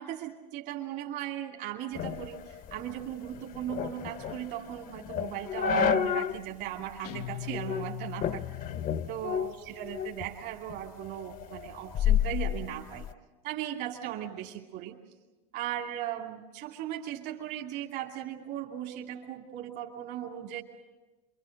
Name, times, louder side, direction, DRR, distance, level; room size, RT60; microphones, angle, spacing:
voice 1, 0.0-8.4 9.1-13.1 13.4-15.0 15.5-20.6, right 11 dB, 60° right, 0 dB, 2.6 m, -38 dB
sound 1, 2.0-6.4 6.8-6.9 7.5-7.9 8.2-10.3 10.7-13.1, left 7 dB, 45° left, 0.9 m, -31 dB
Guitar, 7.0-9.6, left 13 dB, 80° left, 0.7 m, -41 dB
26.5 x 23.5 x 6.5 m, 1.1 s
supercardioid pair, 100°, 20 cm